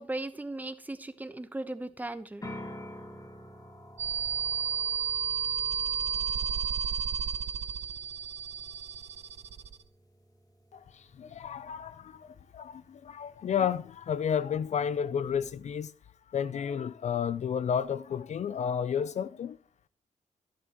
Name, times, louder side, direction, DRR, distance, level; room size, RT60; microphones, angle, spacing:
voice 1, 0.0-2.5, right 2 dB, 10° right, 1.0 m, -37 dB
sound 1, 2.4-14.2, left 1 dB, 25° left, 2.3 m, -50 dB
sound 2, 4.0-9.8, right 8 dB, 55° right, 0.8 m, -32 dB
voice 2, 10.7-15.9 16.3-19.6, left 8 dB, 60° left, 0.5 m, -32 dB
12.5 x 11.0 x 3.0 m
cardioid pair, 105°, 13 cm